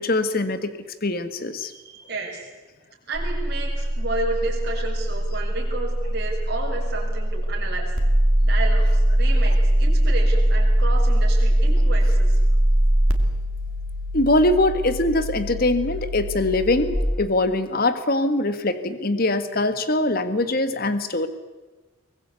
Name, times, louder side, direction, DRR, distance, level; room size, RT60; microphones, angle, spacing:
voice 1, 0.0-1.7 14.1-21.3, left 2 dB, 45° left, 11 dB, 1.5 m, -22 dB
voice 2, 1.6-2.5 3.1-7.9 8.4-12.4, right 3 dB, 50° right, -2 dB, 6.0 m, -32 dB
sound 1, 3.1-17.0, right 1 dB, 80° right, 2.3 m, -21 dB
23.0 x 20.0 x 8.3 m, 1.2 s
head